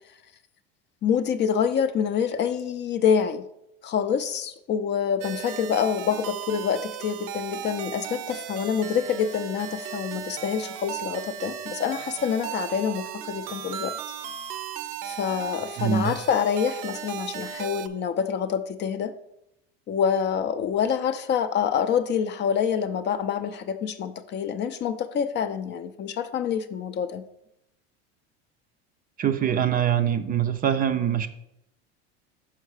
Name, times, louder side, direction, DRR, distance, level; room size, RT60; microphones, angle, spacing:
voice 1, 1.0-3.4 3.8-13.9 15.0-19.1 19.9-27.2, left 7 dB, 35° left, 10 dB, 0.5 m, -26 dB
sound 1, 5.2-17.9, right 10 dB, 75° right, 0.7 m, -36 dB
voice 2, 15.8-16.2 29.2-31.3, right 9 dB, 25° right, 9 dB, 0.4 m, -23 dB
5.6 x 5.6 x 4.8 m, 0.82 s
supercardioid pair, 110°, 32 cm